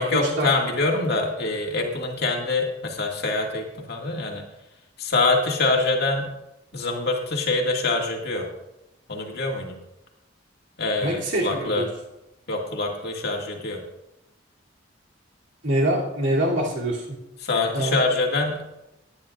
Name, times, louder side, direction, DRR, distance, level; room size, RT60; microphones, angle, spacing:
voice 1, 0.0-4.4 5.0-6.3 6.7-8.5 9.1-9.8 10.8-11.8 12.5-13.8 17.4-18.6, left 3 dB, 55° left, 0 dB, 2.2 m, -25 dB
voice 2, 11.0-11.9 15.6-17.2 17.7-18.0, right 1 dB, 65° right, -3 dB, 2.9 m, -24 dB
18.0 x 10.5 x 2.5 m, 0.92 s
head